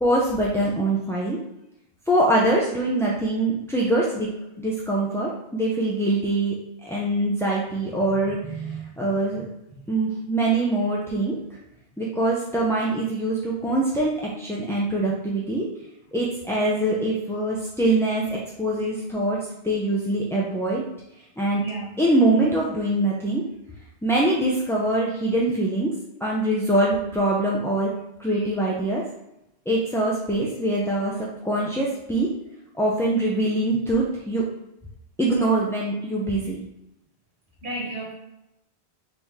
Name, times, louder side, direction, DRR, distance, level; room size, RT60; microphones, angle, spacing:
voice 1, 0.0-1.4 2.1-4.3 4.6-6.6 6.8-9.5 9.9-11.4 12.0-15.6 16.1-19.4 19.6-20.8 21.4-21.6 22.0-23.4 24.0-25.9 26.2-27.9 28.2-29.0 29.7-32.3 32.7-34.4 35.2-36.6, right 1 dB, 5° left, -5 dB, 0.4 m, -23 dB
voice 2, 8.4-9.0 9.7-9.8 21.5-22.0 37.6-38.1, right 3 dB, 80° right, -3 dB, 1.3 m, -33 dB
4.2 x 3.2 x 3.5 m, 0.87 s
omnidirectional pair, 1.1 m